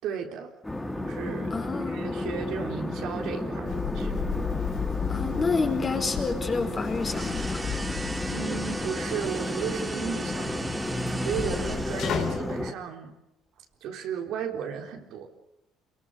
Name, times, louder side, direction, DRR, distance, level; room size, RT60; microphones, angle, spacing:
voice 1, 0.0-0.6 1.0-1.6 1.9-4.2 8.3-13.2 13.8-15.3, right 8 dB, 70° right, 2 dB, 4.0 m, -35 dB
sound 1, 0.6-12.7, left 1 dB, 10° left, 2.9 m, -32 dB
voice 2, 1.5-2.1 5.1-7.6, left 4 dB, 30° left, 4 dB, 4.8 m, -29 dB
sound 2, 3.7-12.4, left 7 dB, 65° left, 4.0 m, -35 dB
sound 3, 6.9-12.6, right 2 dB, 20° right, 2.7 m, -38 dB
26.5 x 23.0 x 6.5 m, 0.90 s
cardioid pair, 100°, 0 cm